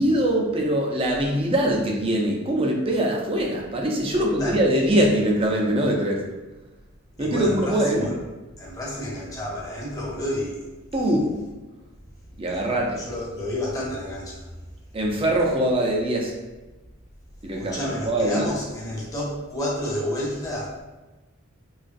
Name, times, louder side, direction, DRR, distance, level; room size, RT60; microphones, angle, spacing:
voice 1, 0.0-6.2 7.2-8.1 10.9-11.3 12.4-13.0 14.9-16.3 17.4-18.5, right 1 dB, 25° right, -1 dB, 0.5 m, -22 dB
voice 2, 4.1-4.6 7.2-8.2 8.6-10.6 10.9-11.1 12.5-12.6 13.0-14.5 17.6-20.8, left 1 dB, 15° left, -5 dB, 0.8 m, -30 dB
3.9 x 2.9 x 2.5 m, 1.1 s
head